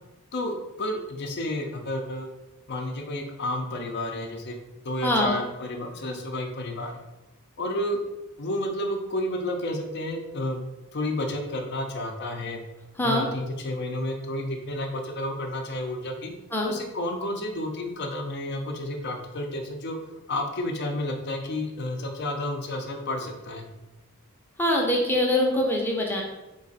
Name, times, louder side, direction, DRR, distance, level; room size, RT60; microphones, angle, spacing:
voice 1, 0.3-2.3 2.7-4.6 4.8-7.0 7.6-8.0 8.4-10.6 10.9-12.6 13.0-16.3 16.6-20.0 20.3-23.7, left 1 dB, 50° left, 3 dB, 0.6 m, -31 dB
voice 2, 5.0-5.3 13.0-13.3 16.5-16.7 24.6-26.2, left 1 dB, 10° left, -1 dB, 0.6 m, -23 dB
3.9 x 2.5 x 4.0 m, 1.0 s
head